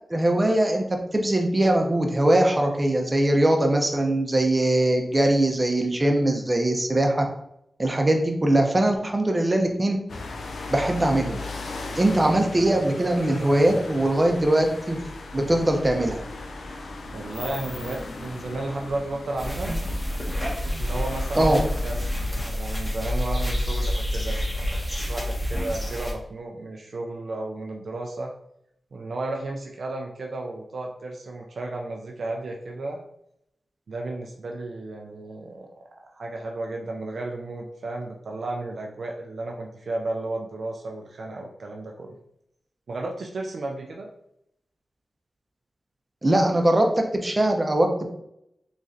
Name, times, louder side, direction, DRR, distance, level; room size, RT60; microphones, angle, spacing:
voice 1, 0.1-7.3 7.8-10.0 10.7-11.4 12.0-15.0 15.3-16.2 21.3-21.6 46.2-46.9 47.2-47.9, right 1 dB, 30° right, 3 dB, 0.7 m, -21 dB
sound 1, 10.1-22.5, left 3 dB, 80° left, 0.4 m, -37 dB
voice 2, 16.7-19.7 20.8-24.8 25.1-28.3 28.9-33.0 33.9-35.7 36.0-42.1 42.9-44.1, right 2 dB, 75° right, 1 dB, 0.4 m, -33 dB
sound 2, 19.4-26.1, left 1 dB, ahead, 1.2 m, -28 dB
3.7 x 3.1 x 2.7 m, 0.77 s
cardioid pair, 45°, 0 cm